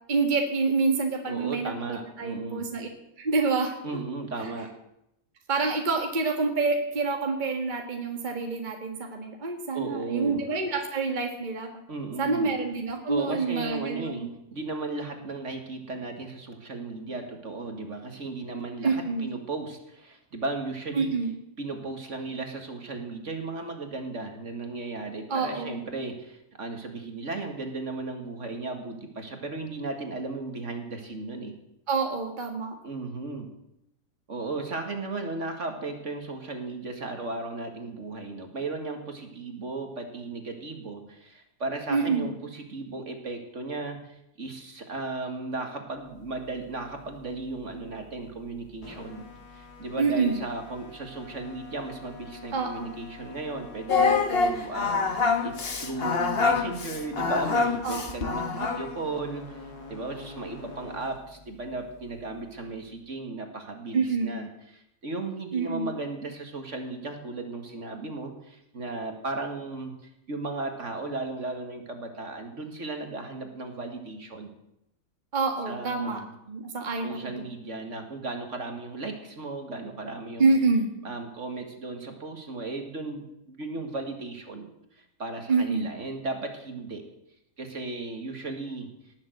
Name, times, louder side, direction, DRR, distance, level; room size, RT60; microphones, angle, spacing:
voice 1, 0.1-2.9 3.2-3.8 5.5-11.7 12.2-14.3 18.8-19.3 20.9-21.3 25.3-25.8 31.9-32.7 41.9-42.3 50.0-50.4 52.5-52.9 57.8-58.1 63.9-64.4 65.5-65.9 75.3-76.2 76.5-77.3 80.4-80.9 85.5-85.9, right 4 dB, 30° right, 3 dB, 1.6 m, -27 dB
voice 2, 1.3-2.7 3.8-4.7 9.7-10.4 11.9-12.5 13.1-21.1 21.6-31.5 32.8-33.5 34.3-49.2 49.5-55.0 55.4-59.6 59.9-74.5 75.7-76.2 77.0-80.5 81.0-87.1 87.6-89.1, right 3 dB, 50° right, 4 dB, 2.2 m, -35 dB
sound 1, 45.9-63.1, left 2 dB, 75° left, 2.8 m, -47 dB
Singing, 53.9-59.0, left 4 dB, 40° left, 1.4 m, -25 dB
19.0 x 7.4 x 7.8 m, 0.82 s
omnidirectional pair, 1.7 m